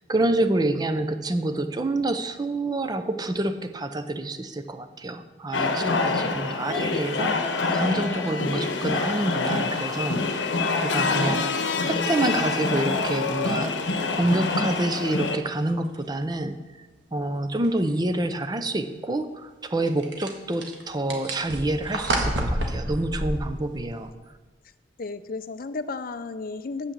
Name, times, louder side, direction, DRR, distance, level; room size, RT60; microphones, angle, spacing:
voice 1, 0.1-7.4 7.7-10.5 10.8-11.5 11.8-13.7 14.1-16.6 17.1-24.1, right 1 dB, 20° right, 9 dB, 0.6 m, -27 dB
sound 1, 5.5-15.4, left 3 dB, 75° left, 0.9 m, -26 dB
voice 2, 5.8-6.2 25.0-26.9, left 3 dB, 50° left, 12 dB, 0.5 m, -34 dB
sound 2, 14.5-14.6 15.3-15.4 15.9-16.0 17.6-17.8 19.9-24.1, right 1 dB, 75° right, 1.6 m, -29 dB
8.1 x 6.4 x 7.4 m, 1.3 s
head